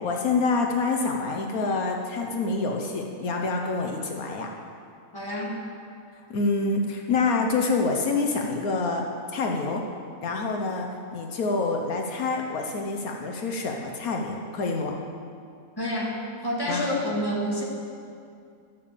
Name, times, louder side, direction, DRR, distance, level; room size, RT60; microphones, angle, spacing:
voice 1, 0.0-4.5 6.3-9.0 9.3-9.8 10.2-14.9 16.7-16.9, left 3 dB, 75° left, 1 dB, 1.4 m, -27 dB
voice 2, 5.1-5.6 15.8-16.1 16.4-17.6, equal, 15° left, -4 dB, 2.0 m, -28 dB
12.0 x 7.0 x 7.2 m, 2.4 s
omnidirectional pair, 1.5 m